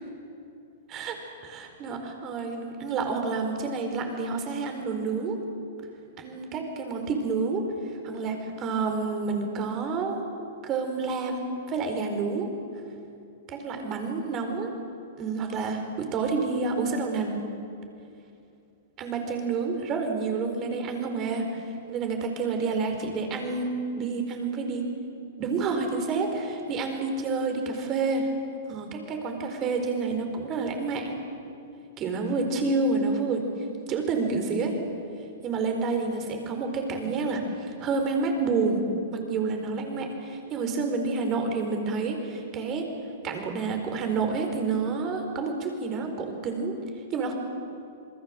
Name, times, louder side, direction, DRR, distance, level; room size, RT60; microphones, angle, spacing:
voice 1, 0.9-5.4 6.2-10.2 10.6-12.5 13.5-14.7 15.2-17.4 19.0-24.8 25.4-28.3 28.7-31.2 32.0-33.5 33.9-34.8 35.4-38.8 39.1-42.9 43.2-46.8 47.1-47.3, right 4 dB, 30° right, 4 dB, 4.5 m, -29 dB
27.5 x 21.5 x 7.8 m, 2.6 s
hypercardioid pair, 140°, 0 cm